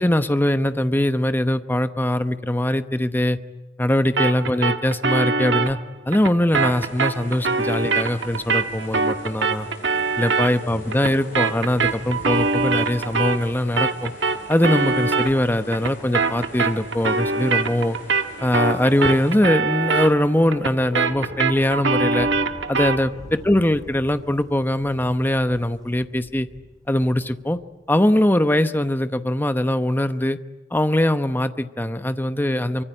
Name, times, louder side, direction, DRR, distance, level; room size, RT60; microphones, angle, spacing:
voice 1, 0.0-3.4 3.8-5.8 6.1-9.7 10.2-14.1 14.5-18.0 18.4-22.3 22.7-26.5 26.9-27.6 27.9-30.4 30.7-32.8, left 1 dB, 10° left, 10 dB, 0.9 m, -21 dB
sound 1, 4.2-13.5 13.8-23.1, right 4 dB, 75° right, 1.4 m, -24 dB
sound 2, 6.5-19.4, left 2 dB, 50° left, 7.1 m, -42 dB
Thunder, 18.0-27.9, equal, 20° right, 3.0 m, -44 dB
24.5 x 24.0 x 10.0 m, 1.2 s
head